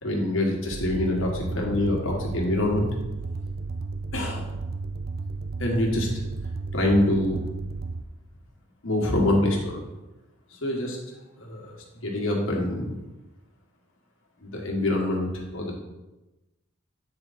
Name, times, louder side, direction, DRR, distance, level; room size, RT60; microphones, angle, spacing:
voice 1, 0.0-2.9 4.1-4.4 5.6-6.1 6.7-7.4 8.8-9.8 10.6-11.0 11.4-11.7 12.0-12.9 14.4-15.8, left 1 dB, 70° left, -1 dB, 1.5 m, -25 dB
sound 1, 0.7-8.0, right 3 dB, 45° right, 0.4 m, -33 dB
8.8 x 3.7 x 4.2 m, 1.0 s
head